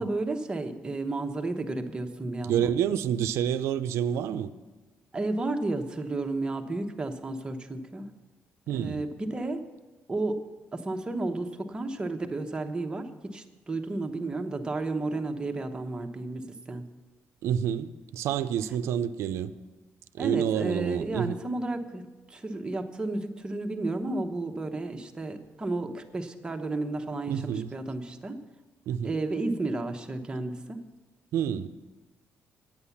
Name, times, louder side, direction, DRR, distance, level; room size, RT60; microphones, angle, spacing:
voice 1, 0.0-2.7 5.1-8.1 8.7-9.6 10.1-10.4 10.7-16.8 20.2-22.0 22.3-28.4 29.0-30.8, right 2 dB, 20° right, 0.9 m, -32 dB
voice 2, 2.4-4.5 8.7-9.0 17.4-19.5 20.1-21.4 27.3-27.7 28.9-29.1 31.3-31.7, right 9 dB, 90° right, 0.5 m, -28 dB
9.6 x 9.1 x 7.1 m
cardioid pair, 130°, 5 cm